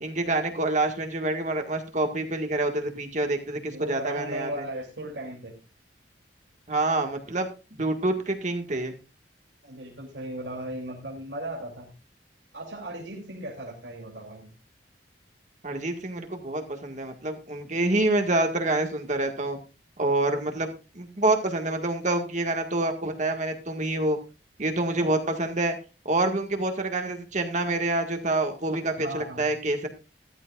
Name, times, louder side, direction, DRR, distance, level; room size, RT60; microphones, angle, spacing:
voice 1, 0.0-4.5 6.7-7.5 7.8-8.9 15.6-19.6 20.0-24.2 24.6-25.8 26.1-29.9, right 2 dB, 45° right, 5 dB, 1.7 m, -27 dB
voice 2, 3.7-5.5 9.6-11.9 12.5-14.5 29.0-29.5, right 1 dB, 85° right, -1 dB, 2.9 m, -36 dB
14.0 x 13.0 x 2.5 m, 0.30 s
head